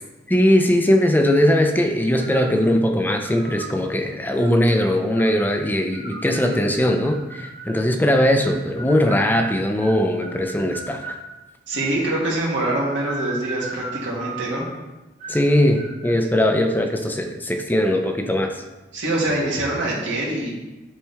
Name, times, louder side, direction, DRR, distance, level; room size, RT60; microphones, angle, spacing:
voice 1, 0.3-11.2 15.3-18.6, left 1 dB, 10° left, 5 dB, 0.5 m, -20 dB
sound 1, 2.2-2.6 3.1-3.8 4.4-5.4 5.9-7.8 8.4-11.2 11.7-12.3 12.8-14.7 15.2-15.5 15.7-16.2, right 3 dB, 35° right, 1.1 m, -37 dB
voice 2, 11.7-14.6 18.9-20.5, right 1 dB, 80° right, -5 dB, 2.2 m, -24 dB
10.0 x 4.3 x 3.5 m, 1.1 s
head